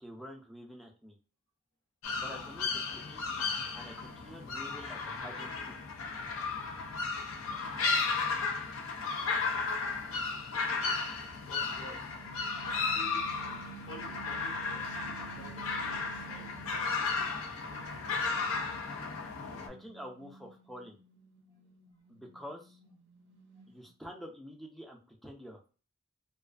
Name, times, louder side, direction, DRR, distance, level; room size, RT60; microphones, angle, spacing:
voice 1, 0.0-1.2 2.2-3.4 3.7-5.8 19.7-21.0 22.1-22.8 23.7-25.7, equal, ahead, 1 dB, 0.4 m, -48 dB
sound 1, 2.0-19.7, left 4 dB, 85° left, 0.5 m, -34 dB
voice 2, 9.4-10.4 10.7-12.1 12.9-13.6 13.9-16.5 23.7-23.8, left 1 dB, 65° left, -1 dB, 0.9 m, -52 dB
sound 2, 12.1-17.3 17.7-23.9, right 8 dB, 60° right, 0.4 m, -52 dB
2.4 x 2.2 x 2.4 m, 0.36 s
head